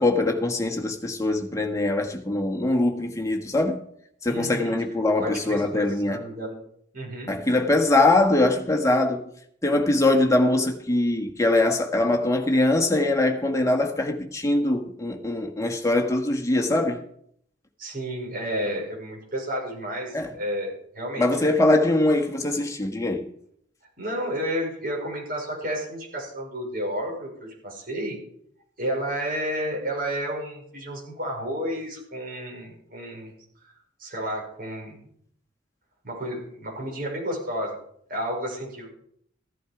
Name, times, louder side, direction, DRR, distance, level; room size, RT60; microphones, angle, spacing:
voice 1, 0.0-3.8 4.2-6.2 7.3-9.3 9.6-17.0 20.1-20.3 21.2-23.3, left 2 dB, 15° left, 1.6 m, -22 dB
voice 2, 4.3-4.9 5.1-6.6 6.9-7.3 17.8-21.3 24.0-28.2 28.8-33.3 33.6-33.7 34.0-35.0 36.0-37.8 38.1-38.9, equal, 50° right, 5.5 m, -31 dB
15.0 x 11.0 x 4.9 m
head